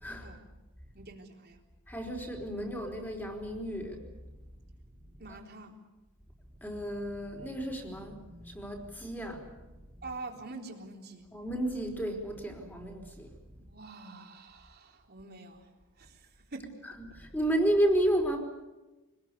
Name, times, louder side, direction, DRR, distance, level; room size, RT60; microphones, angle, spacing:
voice 1, 0.9-1.6 5.2-5.8 10.0-11.3 13.6-15.7 16.0-16.7, right 3 dB, 50° right, 2 dB, 3.8 m, -46 dB
voice 2, 1.9-4.0 6.6-9.5 11.3-13.3 17.1-18.4, right 1 dB, 10° left, 3 dB, 4.6 m, -32 dB
26.0 x 20.5 x 8.4 m, 1.1 s
head